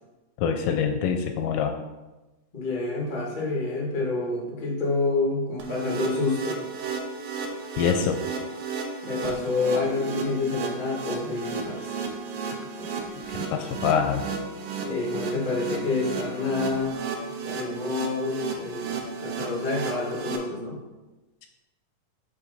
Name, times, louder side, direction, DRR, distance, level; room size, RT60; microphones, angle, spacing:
voice 1, 0.4-1.7 7.8-8.2 13.5-14.3, left 7 dB, 80° left, 5 dB, 2.0 m, -24 dB
voice 2, 2.5-6.6 9.0-11.9 14.8-17.0 17.4-20.8, left 3 dB, 55° left, -3 dB, 0.5 m, -28 dB
sound 1, 5.6-20.4, right 5 dB, 85° right, 2.5 m, -34 dB
6.9 x 4.8 x 4.0 m, 1.1 s
omnidirectional pair, 4.0 m